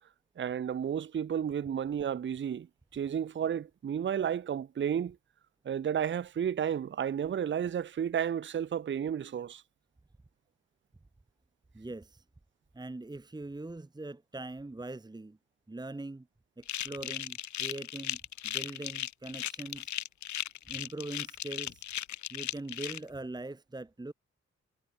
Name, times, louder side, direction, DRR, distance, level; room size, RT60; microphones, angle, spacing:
voice 1, 0.4-2.7 2.9-5.2 5.7-9.6, right 8 dB, 40° right, 0.5 m, -32 dB
voice 2, 11.7-12.2 12.7-15.4 15.7-16.3 16.6-20.0 20.7-21.9 22.3-24.1, right 2 dB, 15° right, 1.2 m, -42 dB
sound 1, 16.6-23.0, left 12 dB, 75° left, 0.5 m, -37 dB
wide cardioid pair, 170°, 29 cm